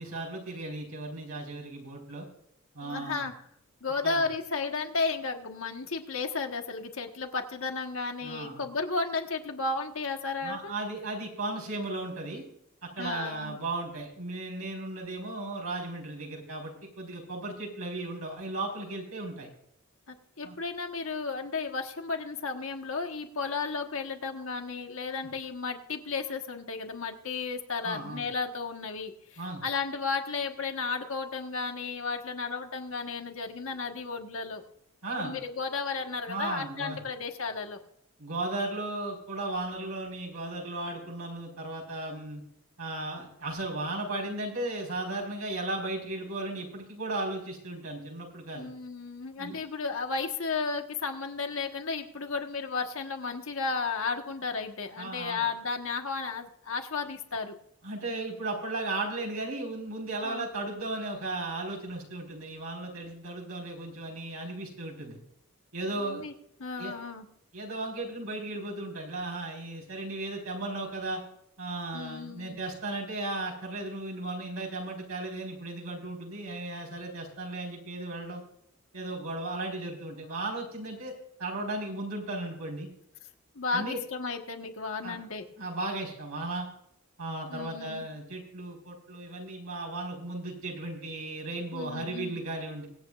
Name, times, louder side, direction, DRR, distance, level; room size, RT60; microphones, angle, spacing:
voice 1, 0.0-2.3 2.7-3.2 4.0-4.2 8.2-8.6 10.4-12.4 12.8-19.5 20.4-20.5 27.8-28.2 29.4-29.6 35.0-35.4 36.3-37.0 38.2-42.4 42.8-48.7 49.4-49.6 55.0-55.5 57.8-65.2 65.7-66.2 66.8-66.9 67.5-71.2 71.6-78.4 78.9-81.1 81.4-82.9 83.7-84.0 85.0-85.2 85.6-86.7 87.2-92.9, right 2 dB, 85° right, -1 dB, 4.8 m, -35 dB
voice 2, 2.8-3.3 3.8-10.7 13.0-13.6 20.1-34.6 35.1-37.8 48.5-57.5 60.2-60.5 66.0-66.3 66.6-67.3 71.9-72.6 83.5-85.5 87.5-88.0 91.7-92.4, left 4 dB, 65° left, 4 dB, 1.4 m, -33 dB
24.5 x 8.6 x 2.5 m, 0.73 s
head